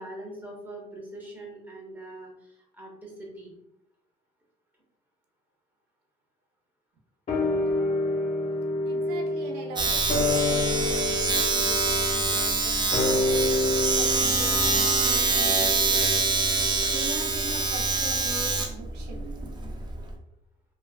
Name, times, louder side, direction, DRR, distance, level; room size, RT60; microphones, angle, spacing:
voice 1, 0.0-3.5, right 1 dB, 10° right, -2 dB, 0.9 m, -42 dB
sound 1, 7.3-17.9 18.2-18.3, left 2 dB, 40° left, 0.7 m, -29 dB
voice 2, 8.8-13.5 14.0-16.2 16.9-19.3, right 4 dB, 85° right, 1 dB, 0.5 m, -41 dB
Domestic sounds home sounds, 9.8-20.1, right 3 dB, 25° right, 0.4 m, -25 dB
3.1 x 2.3 x 2.3 m, 0.79 s
cardioid pair, 110°, 17 cm